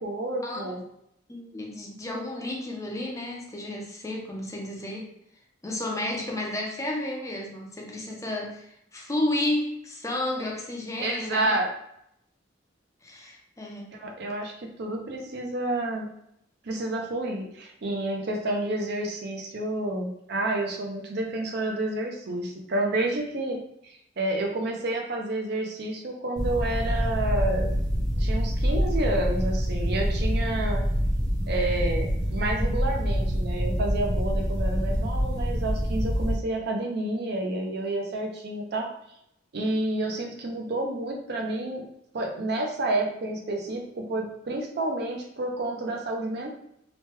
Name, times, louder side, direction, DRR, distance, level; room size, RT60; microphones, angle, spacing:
voice 1, 0.0-0.8 11.0-11.7 13.9-16.1 16.6-27.7 28.2-30.8 31.5-38.9 39.5-41.8 42.1-46.5, right 2 dB, 55° right, 1 dB, 0.5 m, -29 dB
voice 2, 1.3-5.1 5.6-11.6 13.0-13.9, left 1 dB, 15° left, -1 dB, 0.5 m, -32 dB
sound 1, 26.4-36.3, equal, 20° right, 0.8 m, -26 dB
2.9 x 2.2 x 3.1 m, 0.75 s
head